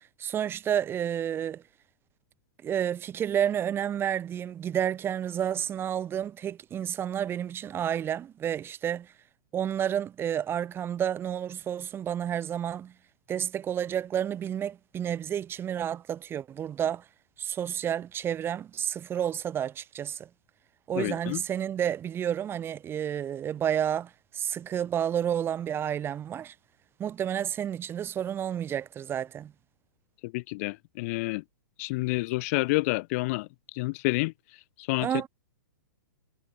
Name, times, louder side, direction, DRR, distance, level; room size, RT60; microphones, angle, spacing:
voice 1, 0.0-1.6 2.6-9.1 9.5-12.9 13.3-17.0 17.4-20.3 20.9-26.5 27.0-29.5 35.0-35.3, right 9 dB, 20° right, 5.9 m, -30 dB
voice 2, 21.0-21.4 30.2-31.4 31.8-35.3, left 24 dB, 45° left, 3.6 m, -29 dB
hypercardioid pair, 130°, 11 cm